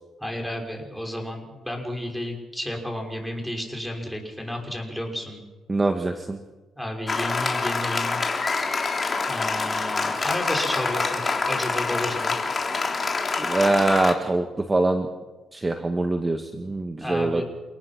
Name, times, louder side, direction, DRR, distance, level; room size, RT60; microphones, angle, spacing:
voice 1, 0.2-5.4 6.7-8.2 9.3-12.4 16.6-17.4, left 1 dB, ahead, 1 dB, 6.1 m, -32 dB
voice 2, 5.7-6.4 13.4-15.1 15.5-17.4, right 2 dB, 20° right, 6 dB, 1.6 m, -23 dB
Applause, 7.1-14.1, left 4 dB, 35° left, 3.4 m, -26 dB
28.5 x 19.0 x 6.1 m, 1.2 s
cardioid pair, 90°, 0 cm